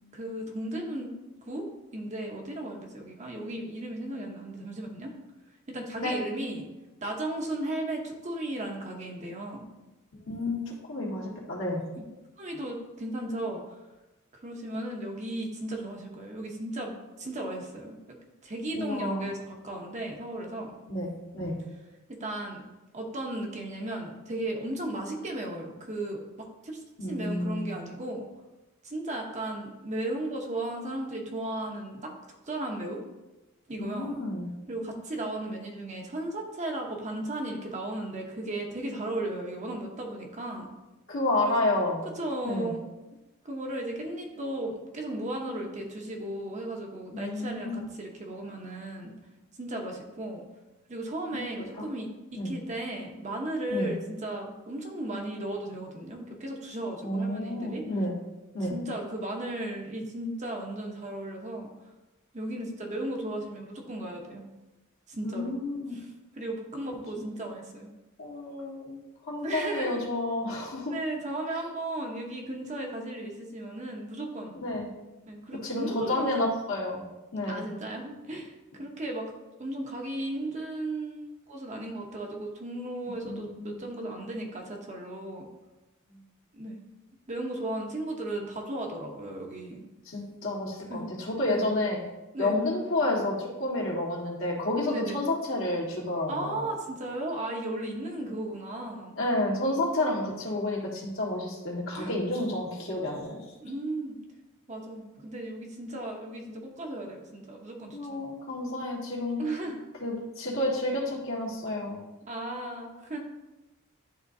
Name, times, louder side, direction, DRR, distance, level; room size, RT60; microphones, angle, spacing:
voice 1, 0.1-1.1 1.5-1.7 1.9-5.1 5.7-6.7 7.0-9.7 12.0-12.1 12.4-13.8 14.4-18.2 18.4-20.7 22.2-22.6 22.9-28.3 28.8-32.1 32.5-33.0 33.7-34.1 34.7-40.7 41.4-41.6 42.2-42.8 43.4-49.1 49.6-50.4 50.9-57.8 58.6-61.7 62.3-64.5 65.1-65.5 65.9-66.1 66.4-67.9 69.4-70.0 70.9-74.5 75.3-76.5 77.5-79.3 79.6-85.5 86.5-86.8 87.3-89.8 90.9-91.1 91.4-91.7 92.3-92.6 94.9-95.2 96.3-99.1 102.0-102.1 103.6-104.2 104.7-108.2 109.4-109.8 112.3-113.2, right 1 dB, 35° right, 1 dB, 0.9 m, -35 dB
voice 2, 10.3-10.6 10.9-11.8 18.7-19.3 20.9-21.1 21.3-21.5 27.0-27.7 33.8-34.5 41.1-42.0 42.4-42.7 47.1-47.8 51.3-51.4 51.8-51.9 52.3-52.5 53.7-53.9 57.0-58.1 58.5-58.7 65.2-65.9 67.1-67.2 68.2-69.0 69.3-70.9 74.6-74.9 75.6-77.0 77.3-77.6 83.2-83.8 90.0-92.0 92.4-96.7 99.2-103.4 107.9-109.4 110.0-112.1, left 1 dB, 65° left, -3 dB, 1.6 m, -30 dB
11.0 x 3.7 x 2.7 m, 1.1 s
head